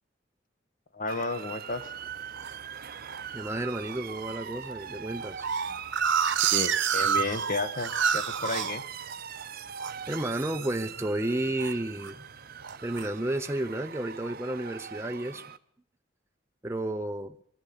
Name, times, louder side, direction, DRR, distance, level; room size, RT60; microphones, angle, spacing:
voice 1, 0.9-1.8 6.5-8.8, left 3 dB, 45° left, 10 dB, 1.2 m, -32 dB
Motor vehicle (road) / Siren, 1.1-15.6, right 8 dB, 55° right, 0.8 m, -42 dB
sound 1, 1.8-2.5 3.1-3.5 3.9-4.0 4.2-4.3 4.6-9.4 9.8-10.2 10.5-10.9 11.2-12.1 12.6-13.1, right 7 dB, 80° right, 1.1 m, -29 dB
voice 2, 3.3-5.4 10.1-12.2 12.8-15.4 16.6-17.4, right 1 dB, 15° right, 5 dB, 0.8 m, -32 dB
23.0 x 13.5 x 8.7 m, 0.64 s
head